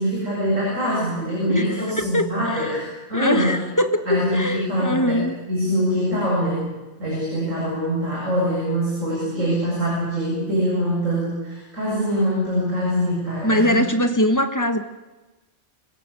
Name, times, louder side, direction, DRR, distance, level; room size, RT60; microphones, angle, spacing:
voice 1, 0.0-3.6 4.1-5.2 5.5-6.7 7.0-13.9, equal, 90° right, -5 dB, 8.0 m, -23 dB
voice 2, 1.5-2.8 3.1-5.4 13.4-14.8, left 1 dB, 15° left, 9 dB, 1.4 m, -22 dB
26.5 x 16.5 x 8.3 m, 1.2 s
omnidirectional pair, 1.3 m